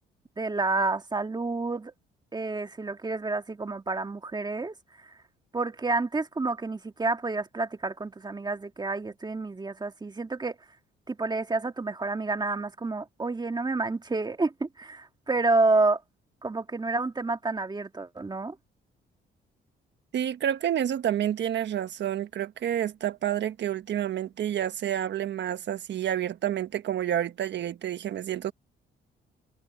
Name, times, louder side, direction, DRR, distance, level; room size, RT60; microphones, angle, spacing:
voice 1, 0.4-1.9 2.3-4.7 5.5-10.6 11.1-16.0 16.4-18.6, right 3 dB, 20° right, 1.7 m, -29 dB
voice 2, 20.1-28.5, right 10 dB, 65° right, 1.3 m, -29 dB
cardioid pair, 90°, 20 cm